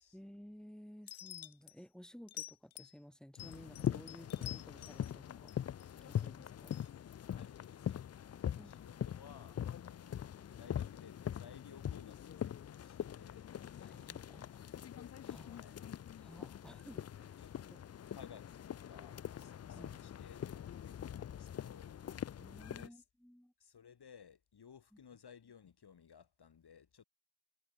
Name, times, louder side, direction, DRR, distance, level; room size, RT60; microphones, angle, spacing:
voice 1, 0.1-5.7 6.0-6.8 8.6-8.8 13.8-14.6 15.2-15.6 16.2-17.4 19.7-20.0 22.4-23.5, equal, ahead, 4.1 m, -56 dB
sound 1, 1.1-1.7 2.3-2.9 3.3-5.1 5.5-6.2 6.7-6.9, left 13 dB, 70° left, 1.1 m, -49 dB
sound 2, 3.4-22.9, left 9 dB, 35° left, 0.5 m, -43 dB
voice 2, 7.3-10.2 10.5-13.6 15.4-15.8 16.6-16.8 17.4-17.5 18.1-22.0 22.7-23.0 23.6-27.0, left 7 dB, 55° left, 3.8 m, -59 dB
cardioid pair, 80°, 48 cm